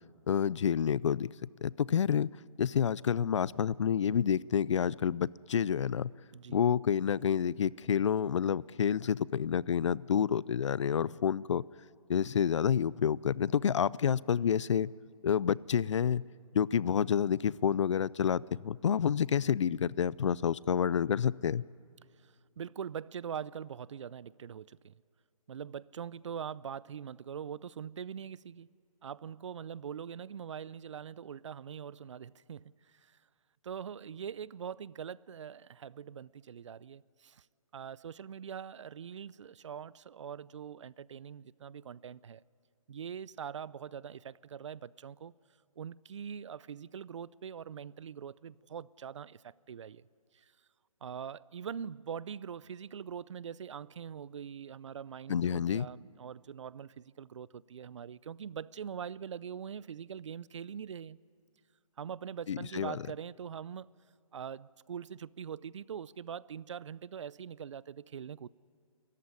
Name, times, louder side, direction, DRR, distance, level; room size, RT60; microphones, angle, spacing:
voice 1, 0.3-1.3 1.6-2.3 2.6-6.1 6.5-11.6 12.1-14.9 15.2-16.2 16.5-21.6 55.3-55.9 62.5-63.0, left 8 dB, 55° left, 0.5 m, -29 dB
voice 2, 22.2-24.9 25.5-28.7 29.0-33.2 33.6-37.5 37.7-42.4 42.9-45.3 45.8-50.1 50.3-50.5 51.0-61.2 62.0-63.9 64.3-68.5, right 8 dB, 55° right, 0.5 m, -43 dB
29.5 x 14.5 x 9.7 m
hypercardioid pair, 160°, 18 cm